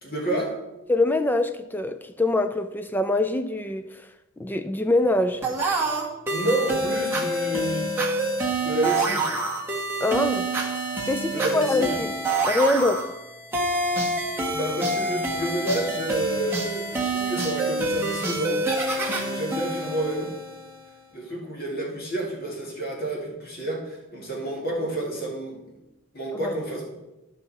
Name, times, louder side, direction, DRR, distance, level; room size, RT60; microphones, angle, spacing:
voice 1, 0.0-0.5 6.3-8.0 8.6-9.3 11.3-12.0 14.5-18.6 18.9-20.3 21.1-25.6 26.1-26.9, right 1 dB, 45° left, 2.3 m, -29 dB
voice 2, 0.9-4.0 4.4-5.5 10.0-10.5 11.1-12.1 12.4-13.1 26.3-26.5, left 2 dB, 10° left, 0.4 m, -24 dB
sound 1, 5.4-20.9, right 2 dB, 10° right, 1.3 m, -27 dB
13.0 x 5.6 x 4.2 m
head